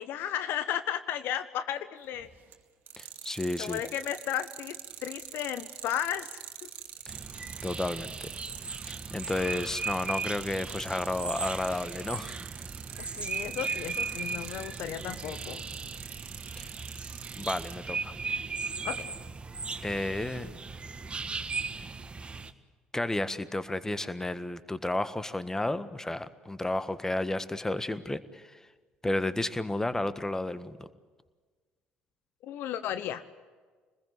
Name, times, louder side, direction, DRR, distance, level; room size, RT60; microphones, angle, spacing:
voice 1, 0.0-2.3 3.6-4.8 5.0-6.3 6.6-6.7 13.1-15.6 18.8-19.1 32.4-33.2, left 10 dB, 60° left, 13 dB, 0.9 m, -34 dB
sound 1, 2.1-2.5 2.9-17.7, right 10 dB, 55° right, 2.2 m, -44 dB
voice 2, 3.0-3.8 7.1-7.2 7.6-8.3 8.9-12.3 16.6-16.7 17.4-18.1 19.8-20.5 22.9-28.6 29.0-30.9, left 2 dB, 10° left, 14 dB, 1.5 m, -32 dB
sound 2, 7.1-22.5, right 4 dB, 25° right, 1.7 m, -37 dB
25.5 x 21.0 x 8.0 m, 1.4 s
figure-of-eight pair, 50°, 4 cm